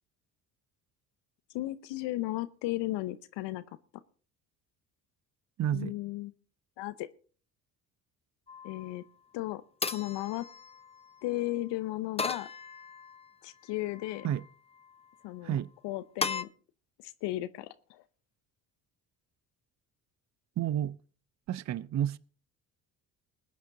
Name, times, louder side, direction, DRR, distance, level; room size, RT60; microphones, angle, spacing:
voice 1, 1.5-3.6 5.7-6.3 6.8-7.1 8.6-9.0 9.3-10.5 11.2-12.5 13.4-14.3 15.2-15.6 15.8-16.5 17.0-18.0, left 17 dB, 60° left, 0.9 m, -35 dB
voice 2, 5.6-5.9 14.2-14.4 15.4-15.7 20.6-21.0 21.5-22.2, right 10 dB, 35° right, 0.7 m, -30 dB
sound 1, 8.5-9.0 9.8-11.2 12.2-13.3 13.8-14.5 16.2-16.4, left 4 dB, 15° left, 0.7 m, -37 dB
20.5 x 8.9 x 3.9 m
hypercardioid pair, 55°, 48 cm